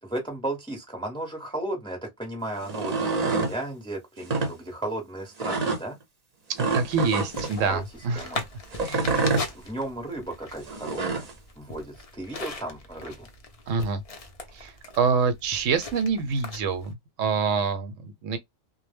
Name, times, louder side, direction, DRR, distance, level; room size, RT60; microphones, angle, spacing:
voice 1, 0.0-6.0 7.7-7.8 8.2-8.4 9.5-11.3 11.6-13.3, right 1 dB, 5° left, 0.6 m, -34 dB
sound 1, 2.6-3.5 4.2-4.5 5.4-5.8 6.6-7.5 8.7-9.5 10.7-11.3, right 3 dB, 40° right, 0.6 m, -26 dB
voice 2, 6.5-8.4 8.8-9.1 13.7-14.0 14.5-18.4, right 5 dB, 75° right, 0.9 m, -26 dB
sound 2, 6.6-16.9, left 3 dB, 60° left, 0.3 m, -40 dB
2.1 x 2.1 x 3.2 m
omnidirectional pair, 1.4 m